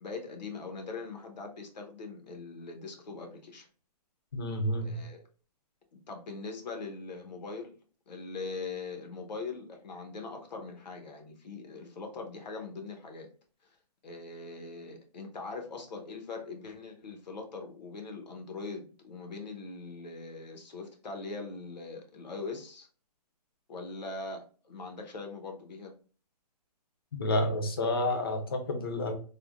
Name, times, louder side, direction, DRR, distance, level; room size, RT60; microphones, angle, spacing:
voice 1, 0.0-3.7 4.8-5.2 5.9-7.7 8.1-13.3 14.0-22.9 23.7-25.9, left 3 dB, 90° left, 0.9 m, -41 dB
voice 2, 4.3-5.0 27.1-29.2, left 1 dB, 35° left, 0.5 m, -30 dB
3.4 x 2.1 x 2.4 m
hypercardioid pair, 175°, 21 cm